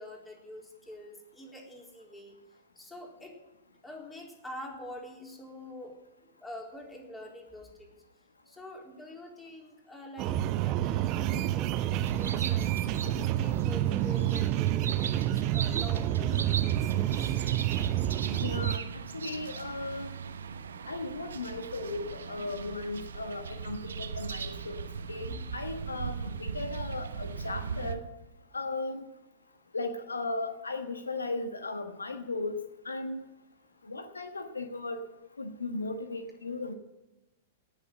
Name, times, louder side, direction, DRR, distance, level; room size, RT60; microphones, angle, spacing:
voice 1, 0.0-2.3 2.8-3.4 3.8-6.0 6.2-7.9 8.5-12.7 13.2-17.4 25.3-25.5, left 1 dB, 10° left, 0 dB, 3.8 m, -45 dB
sound 1, 10.2-18.8, right 13 dB, 40° right, 0.7 m, -28 dB
sound 2, 12.0-28.0, right 6 dB, 70° right, 1.1 m, -39 dB
voice 2, 18.3-18.8 19.1-20.1 20.9-28.0 28.5-29.0 29.7-32.6 32.8-33.2 33.8-35.0 35.4-36.7, left 2 dB, 80° left, 7 dB, 1.4 m, -36 dB
18.0 x 7.2 x 9.1 m, 1.0 s
figure-of-eight pair, 100°, 0 cm